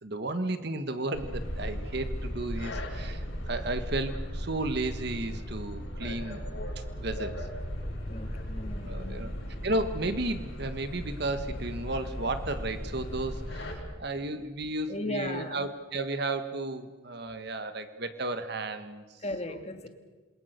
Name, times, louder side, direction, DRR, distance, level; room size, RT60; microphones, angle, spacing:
voice 1, 0.0-6.4 7.0-7.4 8.8-9.3 9.6-19.0 19.5-19.6, right 2 dB, 55° right, 1.5 m, -33 dB
sound 1, 1.1-13.8, equal, 70° left, 5.9 m, -36 dB
voice 2, 8.1-9.3 14.9-15.6 19.2-19.9, left 1 dB, 30° left, 1.8 m, -36 dB
27.5 x 21.5 x 6.7 m
head